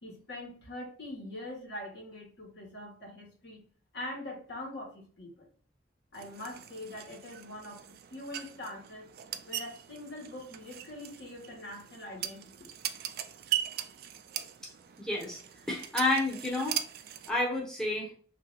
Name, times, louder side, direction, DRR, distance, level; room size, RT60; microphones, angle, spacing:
voice 1, 0.0-3.6 3.9-5.5 6.1-7.8 8.1-9.1 9.5-12.7, left 1 dB, 65° left, -1 dB, 1.3 m, -43 dB
sound 1, 6.1-17.3, right 11 dB, 55° right, 0.3 m, -40 dB
voice 2, 15.0-15.4 15.7-16.8 17.3-18.1, left 2 dB, 5° left, -4 dB, 0.7 m, -30 dB
3.2 x 2.7 x 3.9 m, 0.43 s
head